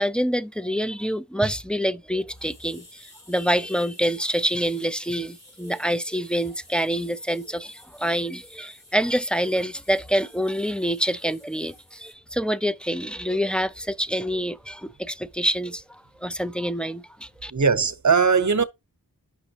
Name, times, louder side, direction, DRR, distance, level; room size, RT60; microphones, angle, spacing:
voice 1, 0.0-17.5, equal, 5° left, 0.5 m, -26 dB
sound 1, 2.3-12.1, equal, 40° left, 4.9 m, -52 dB
voice 2, 17.5-18.6, right 5 dB, 50° right, 0.9 m, -19 dB
9.9 x 6.1 x 2.8 m
wide cardioid pair, 60°, 37 cm